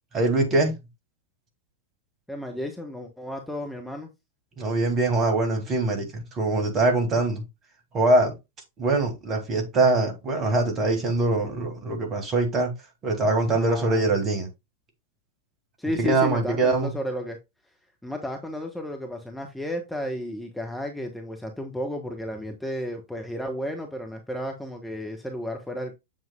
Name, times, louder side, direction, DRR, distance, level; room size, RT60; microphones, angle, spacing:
voice 1, 0.1-0.7 4.6-7.4 7.9-8.3 8.8-12.7 13.0-14.5 16.0-16.9, right 2 dB, 30° right, 2.8 m, -23 dB
voice 2, 2.3-4.1 13.5-14.0 15.8-17.4 18.0-26.0, equal, 5° left, 1.2 m, -33 dB
7.7 x 7.6 x 2.4 m
figure-of-eight pair, 90°, 0 cm